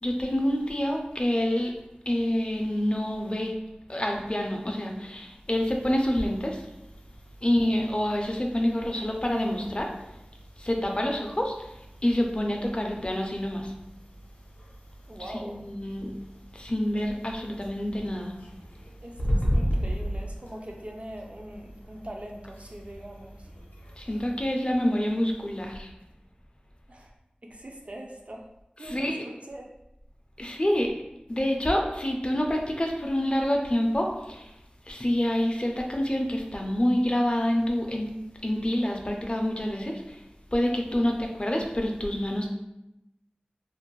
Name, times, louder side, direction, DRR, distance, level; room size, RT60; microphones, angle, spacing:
voice 1, 0.0-1.7 2.1-3.6 3.9-6.6 7.4-9.9 10.6-13.7 15.2-16.1 16.5-18.3 24.0-25.9 28.8-29.2 30.4-30.9 31.3-34.5 34.9-38.1 38.4-40.2 40.5-42.5, left 1 dB, 35° left, 1 dB, 0.4 m, -27 dB
sound 1, 5.5-24.5, equal, 80° left, 0.6 m, -37 dB
voice 2, 15.1-15.6 19.0-23.5 26.9-27.1 27.4-28.4 28.8-29.7 38.8-38.9, right 1 dB, 45° right, 1 dB, 0.4 m, -42 dB
2.5 x 2.1 x 3.0 m, 0.89 s
wide cardioid pair, 45°, 3 cm